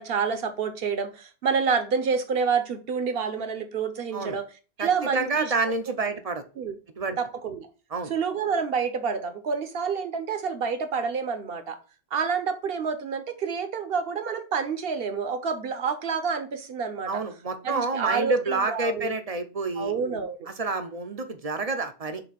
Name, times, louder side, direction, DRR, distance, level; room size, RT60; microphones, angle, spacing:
voice 1, 0.0-4.5 4.8-5.5 6.6-6.7 7.2-7.7 8.1-11.8 12.1-17.2 17.6-19.1 19.8-20.5, right 5 dB, 60° right, 1.1 m, -28 dB
voice 2, 4.8-6.4 7.0-7.2 7.9-8.1 17.1-19.9 20.5-22.2, right 3 dB, 40° right, 0.7 m, -28 dB
6.8 x 2.7 x 5.7 m
omnidirectional pair, 1.1 m